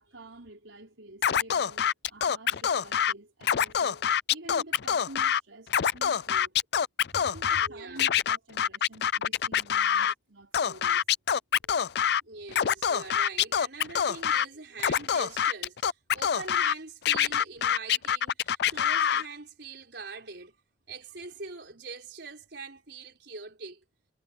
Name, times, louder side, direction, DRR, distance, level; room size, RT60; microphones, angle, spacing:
voice 1, 0.0-6.5 7.1-11.0, right 2 dB, 85° right, 4.8 m, -49 dB
Scratching (performance technique), 1.2-3.1 3.4-5.4 5.7-7.7 8.0-10.1 10.5-12.2 12.5-14.5 14.8-16.7 17.1-19.2, left 8 dB, 60° left, 0.4 m, -25 dB
voice 2, 7.1-8.1 11.6-11.7 12.2-20.6 20.9-23.8, right 4 dB, 60° right, 5.2 m, -43 dB
head